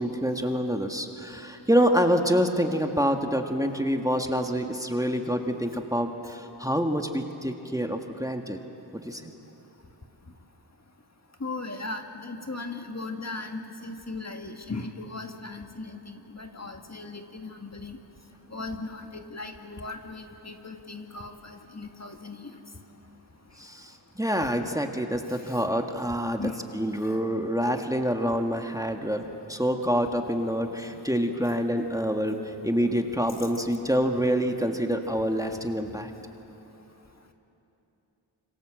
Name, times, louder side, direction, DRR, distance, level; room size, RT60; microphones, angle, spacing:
voice 1, 0.0-8.6 8.9-9.2 23.6-32.3 32.6-36.1, equal, 10° right, 4 dB, 1.7 m, -27 dB
voice 2, 11.4-18.0 18.5-22.5 26.4-26.6 33.1-33.5 34.6-34.8, left 3 dB, 35° left, 4 dB, 1.8 m, -38 dB
26.5 x 25.5 x 7.7 m, 3.0 s
wide cardioid pair, 55°, 44 cm